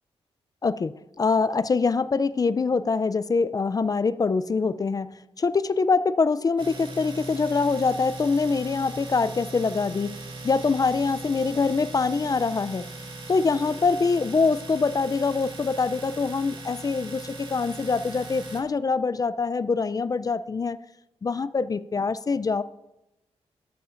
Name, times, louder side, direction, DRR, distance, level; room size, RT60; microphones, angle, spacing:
voice 1, 0.6-5.1 5.4-10.1 10.4-12.9 13.3-20.8 21.2-22.6, left 4 dB, 35° left, 16 dB, 0.4 m, -24 dB
Domestic sounds home sounds, 6.6-18.6, right 2 dB, 45° right, 2.0 m, -39 dB
12.5 x 11.5 x 2.5 m, 0.91 s
cardioid pair, 70°, 11 cm